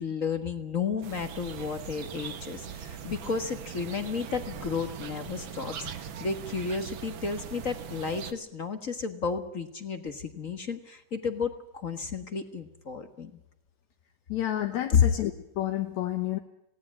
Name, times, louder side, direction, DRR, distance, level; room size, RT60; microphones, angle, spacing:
voice 1, 0.0-13.3 14.9-15.0, left 6 dB, 40° left, 9 dB, 1.3 m, -32 dB
sound 1, 1.0-8.3, right 8 dB, 55° right, 1.6 m, -41 dB
voice 2, 14.3-16.4, left 12 dB, 75° left, 5 dB, 2.5 m, -30 dB
20.0 x 17.0 x 8.5 m, 0.84 s
omnidirectional pair, 3.4 m